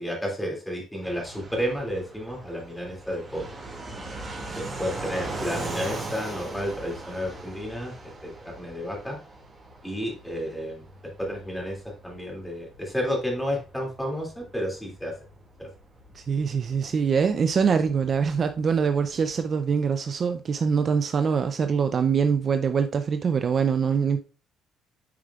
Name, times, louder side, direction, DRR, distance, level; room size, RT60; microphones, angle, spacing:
voice 1, 0.0-3.5 4.6-9.2 9.8-10.8 11.2-15.1 15.6-15.7, equal, 5° left, 2.4 m, -31 dB
Fixed-wing aircraft airplane, 1.0-19.4, right 2 dB, 20° right, 2.2 m, -40 dB
voice 2, 16.1-24.2, right 6 dB, 40° right, 0.5 m, -24 dB
9.4 x 4.9 x 2.4 m
cardioid pair, 130°, 0 cm